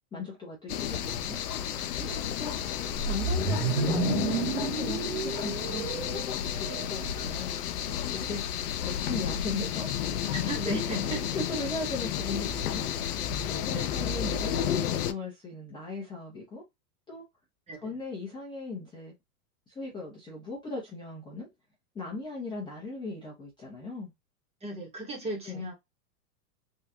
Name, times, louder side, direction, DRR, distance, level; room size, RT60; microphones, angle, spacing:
voice 1, 0.1-1.4 1.9-2.5 3.0-7.6 8.1-8.4 8.8-9.9 10.6-10.8 11.1-12.9 13.5-16.6 17.1-17.2 17.8-19.1 19.7-21.5 21.9-24.1 25.5-25.6, left 3 dB, 10° left, 0.8 m, -38 dB
sound 1, 0.7-15.1, left 9 dB, 80° left, 0.6 m, -32 dB
sound 2, 3.0-7.2, right 6 dB, 70° right, 0.9 m, -31 dB
voice 2, 10.3-11.2 13.7-14.0 17.7-18.0 24.6-25.7, right 2 dB, 15° right, 1.0 m, -37 dB
3.7 x 2.3 x 2.7 m
hypercardioid pair, 145°, 45 cm